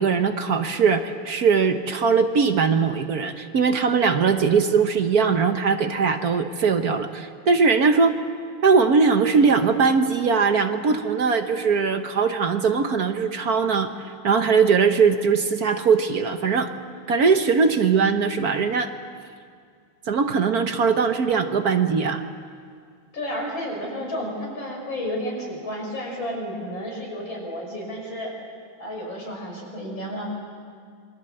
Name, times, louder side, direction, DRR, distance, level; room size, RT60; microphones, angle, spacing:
voice 1, 0.0-8.2 8.6-16.7 17.1-18.9 20.1-22.2, right 5 dB, 55° right, 7 dB, 1.4 m, -20 dB
voice 2, 23.1-28.3 28.8-30.3, equal, 80° left, -1 dB, 6.6 m, -31 dB
27.5 x 22.5 x 7.9 m, 2.2 s
omnidirectional pair, 2.1 m